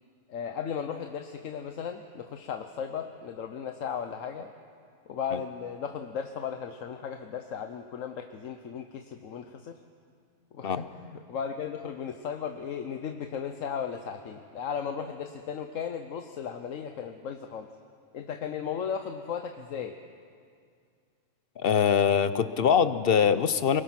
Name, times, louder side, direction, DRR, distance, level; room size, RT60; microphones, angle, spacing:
voice 1, 0.3-4.5 5.1-9.8 10.5-17.7 18.1-20.0, left 7 dB, 85° left, 6 dB, 1.2 m, -36 dB
voice 2, 21.6-23.8, left 7 dB, 55° left, 12 dB, 0.8 m, -23 dB
24.0 x 21.5 x 5.9 m, 2.3 s
omnidirectional pair, 1.3 m